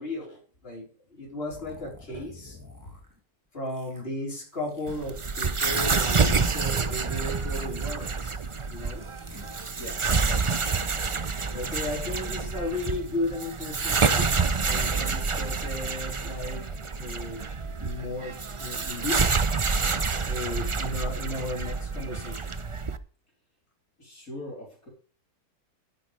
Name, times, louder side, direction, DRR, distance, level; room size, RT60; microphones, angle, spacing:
voice 1, 0.0-2.6 3.5-8.4 8.7-9.0 11.5-14.3 14.7-17.4 17.8-19.2 20.2-22.6, left 2 dB, 35° left, -1 dB, 4.7 m, -35 dB
sound 1, 1.5-3.2 3.6-4.0 4.3-5.1 5.4-7.2 7.5-12.9, left 2 dB, 10° right, 3.0 m, -52 dB
sound 2, 4.9-23.0, right 4 dB, 35° right, 0.5 m, -28 dB
voice 2, 24.0-24.9, left 1 dB, 60° left, -2 dB, 4.3 m, -41 dB
13.0 x 10.5 x 3.3 m, 0.40 s
omnidirectional pair, 1.7 m